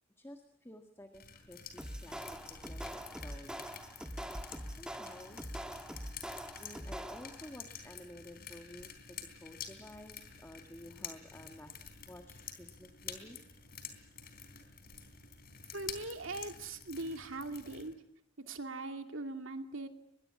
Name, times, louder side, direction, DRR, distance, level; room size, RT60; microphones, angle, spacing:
voice 1, 0.2-2.4 2.7-3.6 4.8-5.4 6.6-11.8 12.1-13.4, left 1 dB, 15° left, 5 dB, 1.7 m, -52 dB
sound 1, 1.1-17.9, left 7 dB, 50° left, 3.6 m, -49 dB
sound 2, 1.8-7.5, equal, 5° right, 1.5 m, -44 dB
voice 2, 15.7-18.0 18.5-19.9, right 2 dB, 80° right, 5 dB, 2.5 m, -41 dB
23.0 x 22.0 x 8.7 m, 0.81 s
head